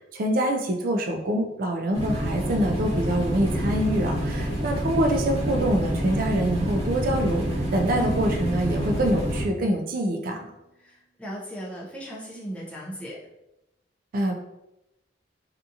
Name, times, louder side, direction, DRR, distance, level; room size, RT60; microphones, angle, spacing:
voice 1, 0.1-7.5 7.7-10.5 14.1-14.4, right 1 dB, 45° right, 3 dB, 0.4 m, -25 dB
sound 1, 1.9-9.4, equal, 30° right, 1.1 m, -27 dB
Marimba xylophone / Wood, 8.0-10.2, right 3 dB, 90° left, 0.4 m, -40 dB
voice 2, 10.8-13.2, equal, 5° left, -5 dB, 0.5 m, -37 dB
2.7 x 2.4 x 2.5 m, 0.89 s
head